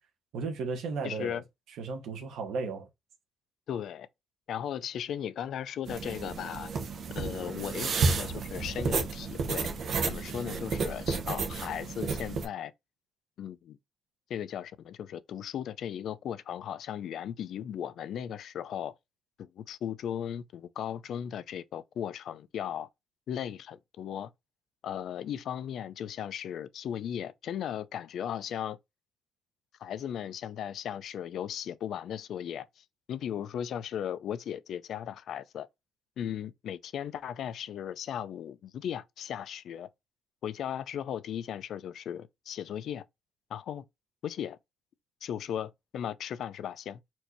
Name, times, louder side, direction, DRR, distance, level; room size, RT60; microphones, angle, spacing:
voice 1, 0.3-1.4 1.8-2.9, right 4 dB, 85° right, 1.2 m, -34 dB
voice 2, 1.0-1.4 3.7-4.1 4.5-6.7 7.1-9.7 10.1-12.7 13.4-13.8 14.3-18.9 19.4-22.9 23.3-24.3 24.8-28.8 29.8-35.7 36.2-39.9 40.4-43.0 43.5-43.8 44.2-44.6 45.2-47.0, left 9 dB, 60° left, 0.4 m, -37 dB
sound 1, 5.9-12.4, right 4 dB, 50° right, 0.8 m, -32 dB
4.4 x 2.7 x 4.4 m
cardioid pair, 175°, 0 cm